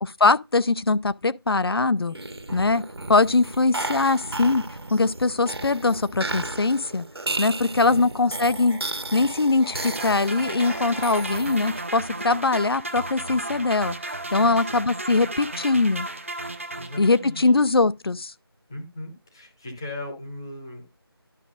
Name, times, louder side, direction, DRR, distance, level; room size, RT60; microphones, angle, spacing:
voice 1, 0.0-2.2 2.5-2.8 3.1-4.6 4.9-7.1 7.4-8.8 9.1-13.9 14.3-16.1 17.0-18.3, left 3 dB, 70° left, 0.5 m, -22 dB
sound 1, 2.1-12.0, right 2 dB, 75° right, 1.6 m, -34 dB
sound 2, 9.7-17.5, right 2 dB, 30° right, 0.6 m, -34 dB
voice 2, 14.4-14.8 16.8-17.4 18.7-20.9, left 1 dB, 10° left, 0.8 m, -38 dB
11.5 x 6.1 x 2.4 m
figure-of-eight pair, 170°, 13 cm